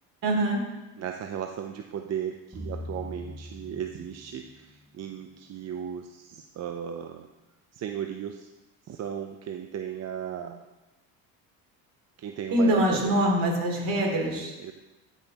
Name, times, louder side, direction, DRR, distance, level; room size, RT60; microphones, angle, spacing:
voice 1, 0.2-0.6 12.5-14.5, right 1 dB, 55° right, -1 dB, 3.2 m, -24 dB
voice 2, 1.0-7.3 7.7-8.5 8.9-10.6 12.2-13.2 13.8-14.1 14.6-14.7, right 9 dB, 40° right, 4 dB, 0.6 m, -36 dB
sound 1, 2.5-4.9, left 1 dB, 5° left, 2.0 m, -41 dB
12.5 x 5.7 x 2.9 m, 1.0 s
supercardioid pair, 90°, 41 cm